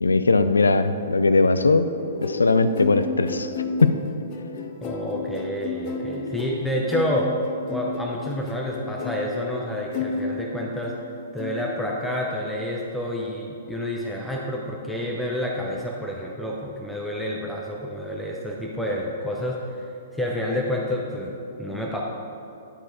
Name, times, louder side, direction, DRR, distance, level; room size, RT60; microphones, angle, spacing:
voice 1, 0.0-1.9 2.2-3.5 3.8-4.0, left 3 dB, 75° left, 11 dB, 0.4 m, -19 dB
sound 1, 2.0-11.0 11.4-11.9, left 3 dB, 40° left, 0.6 m, -32 dB
voice 2, 4.8-7.4 7.7-11.0 11.3-22.0, left 1 dB, 5° left, -3 dB, 0.7 m, -29 dB
10.5 x 4.4 x 4.8 m, 2.7 s
figure-of-eight pair, 115°, 0 cm